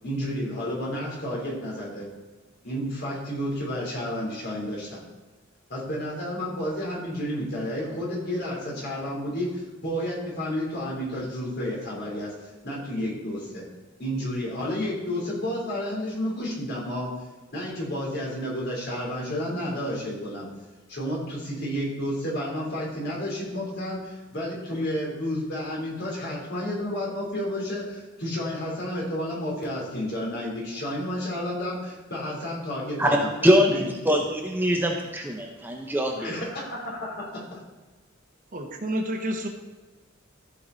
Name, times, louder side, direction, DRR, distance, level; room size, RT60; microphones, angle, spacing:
voice 1, 0.0-2.1 2.6-5.0 5.7-12.3 12.6-13.6 14.0-17.1 17.5-20.5 20.9-33.9 36.2-37.6, equal, 55° left, -4 dB, 3.6 m, -31 dB
voice 2, 33.0-36.3, equal, 10° right, 1 dB, 0.8 m, -23 dB
voice 3, 38.5-39.5, right 1 dB, 40° right, 4 dB, 1.1 m, -29 dB
14.5 x 5.9 x 4.0 m, 1.3 s
head